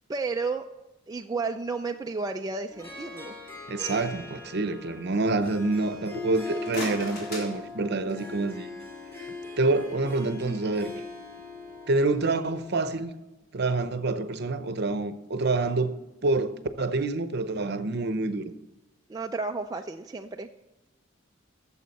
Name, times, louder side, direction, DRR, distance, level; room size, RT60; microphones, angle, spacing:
voice 1, 0.1-0.6 1.1-3.3 19.1-20.5, right 4 dB, 20° right, 0.3 m, -32 dB
Harp, 2.7-13.0, left 3 dB, 10° left, 2.6 m, -41 dB
voice 2, 3.7-8.7 9.6-10.9 11.9-13.1 13.5-16.0 16.2-18.5, right 2 dB, 55° right, 0.7 m, -27 dB
sound 1, 6.5-8.4, left 1 dB, 50° left, 3.8 m, -39 dB
13.5 x 7.2 x 4.1 m
head